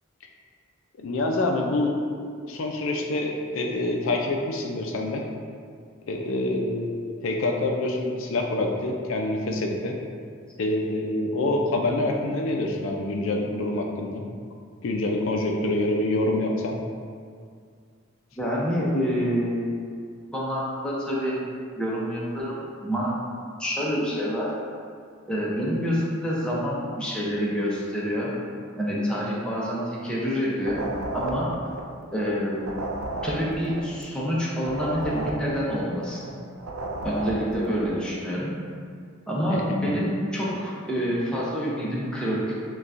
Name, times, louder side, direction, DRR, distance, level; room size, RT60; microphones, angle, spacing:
voice 1, 1.0-2.0 2.4-5.2 6.1-10.0 10.6-14.2 14.8-16.8 39.5-39.9, left 2 dB, 65° left, 1 dB, 0.4 m, -26 dB
voice 2, 18.4-19.7 20.3-21.4 21.8-23.1 23.6-24.5 25.3-28.3 28.8-30.8 31.1-31.5 32.1-32.6 33.2-36.3 37.0-38.5 39.3-42.5, equal, 5° left, -6 dB, 0.6 m, -27 dB
sound 1, 30.6-32.3 32.6-36.3 36.6-37.9, right 2 dB, 85° right, 0.4 m, -34 dB
6.5 x 2.3 x 2.5 m, 2.1 s
head